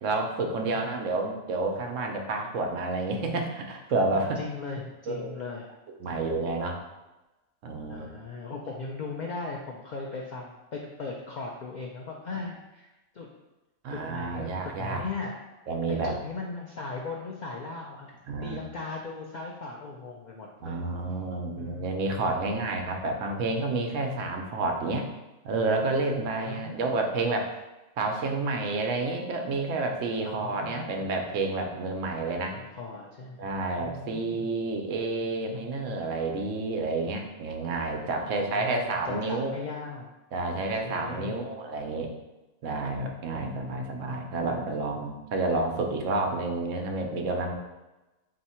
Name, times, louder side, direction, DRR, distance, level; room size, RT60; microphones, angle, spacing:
voice 1, 0.0-4.4 5.1-5.3 6.0-6.8 7.6-8.1 13.8-15.0 15.7-16.2 18.3-18.6 20.6-25.1 25.4-27.5 28.0-32.6 33.4-39.5 40.3-42.1 42.6-47.5, right 3 dB, 75° right, 3 dB, 1.0 m, -29 dB
voice 2, 4.1-5.7 6.0-6.2 7.9-12.9 13.1-13.3 13.9-15.4 15.9-18.1 18.4-20.8 21.6-22.3 26.3-27.1 30.2-31.0 32.5-33.5 33.8-34.5 38.2-40.1 40.6-41.5 43.4-43.9, left 4 dB, 90° left, -1 dB, 0.4 m, -38 dB
3.5 x 2.8 x 4.2 m, 1.1 s
omnidirectional pair, 1.4 m